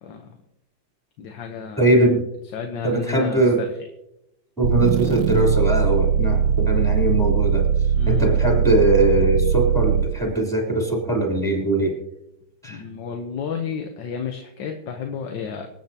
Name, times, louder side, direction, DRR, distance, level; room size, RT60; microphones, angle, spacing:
voice 1, 0.0-0.4 1.2-1.9 2.5-3.7 7.9-8.3 12.7-15.7, left 6 dB, 65° left, 5 dB, 1.6 m, -32 dB
voice 2, 1.8-2.3 2.8-3.6 4.6-7.7 8.1-12.0 12.6-12.8, right 2 dB, ahead, -1 dB, 3.5 m, -21 dB
sound 1, 4.6-10.2, right 8 dB, 75° right, 1.1 m, -20 dB
26.5 x 8.9 x 2.9 m, 0.84 s
omnidirectional pair, 2.3 m